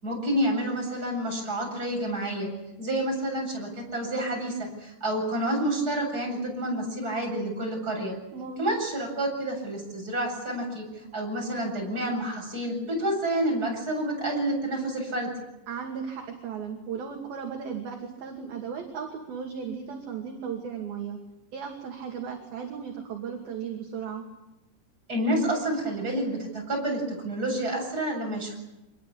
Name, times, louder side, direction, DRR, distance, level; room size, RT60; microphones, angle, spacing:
voice 1, 0.0-2.5 2.8-8.1 8.6-10.8 11.1-15.3 25.1-28.6, right 1 dB, 20° right, 0 dB, 8.2 m, -29 dB
voice 2, 8.3-8.6 15.7-21.2 21.5-24.2, right 7 dB, 55° right, 1 dB, 4.0 m, -36 dB
26.0 x 21.5 x 8.7 m, 0.95 s
omnidirectional pair, 5.7 m